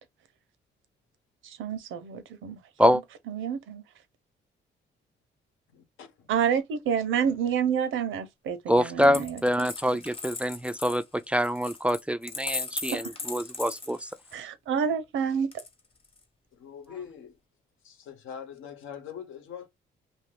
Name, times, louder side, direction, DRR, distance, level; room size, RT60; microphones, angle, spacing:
voice 1, 1.4-2.6 2.9-3.0 3.3-3.8 6.3-9.7 12.9-13.1 14.3-15.6, right 7 dB, 80° right, 0.7 m, -29 dB
voice 2, 5.7-6.3 16.5-17.4 17.8-19.7, left 8 dB, 85° left, 1.0 m, -43 dB
voice 3, 8.7-14.1, equal, 5° right, 0.3 m, -25 dB
Coin (dropping), 9.0-14.4 15.5-16.2, left 3 dB, 30° left, 0.9 m, -38 dB
2.7 x 2.5 x 3.3 m
cardioid pair, 90°, 20 cm